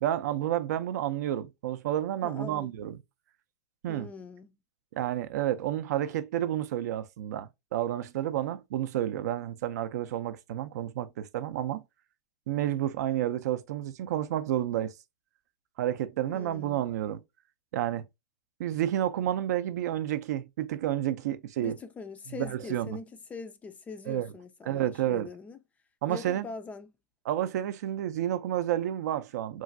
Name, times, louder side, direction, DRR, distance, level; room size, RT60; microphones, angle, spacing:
voice 1, 0.0-3.0 3.8-4.1 4.9-11.8 12.5-14.9 15.8-17.2 17.7-18.0 18.6-21.8 22.4-23.0 24.1-24.3 24.7-25.3 26.0-26.5 27.3-29.6, right 12 dB, 65° right, 0.4 m, -30 dB
voice 2, 2.2-2.7 3.9-4.6 16.2-16.9 21.6-25.6 26.1-26.9, left 4 dB, 15° left, 0.3 m, -42 dB
3.0 x 2.4 x 2.5 m
hypercardioid pair, 130°, 9 cm